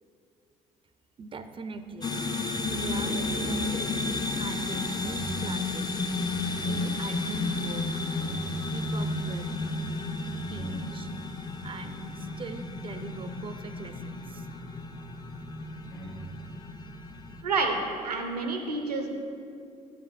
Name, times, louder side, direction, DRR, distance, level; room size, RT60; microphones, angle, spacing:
voice 1, 1.2-2.1 2.7-6.0 6.7-7.8 8.7-9.5 10.5-11.1 11.6-14.5, right 4 dB, 25° right, 9 dB, 0.4 m, -41 dB
sound 1, 2.0-17.4, left 3 dB, 20° left, 0.5 m, -32 dB
sound 2, 2.5-7.3, left 2 dB, 50° left, 1.0 m, -41 dB
sound 3, 3.6-17.9, right 3 dB, 75° left, 1.3 m, -45 dB
voice 2, 17.4-17.8 18.0-19.1, right 3 dB, 85° right, 4 dB, 0.6 m, -28 dB
9.4 x 7.4 x 2.4 m, 2.5 s
figure-of-eight pair, 50°, 20 cm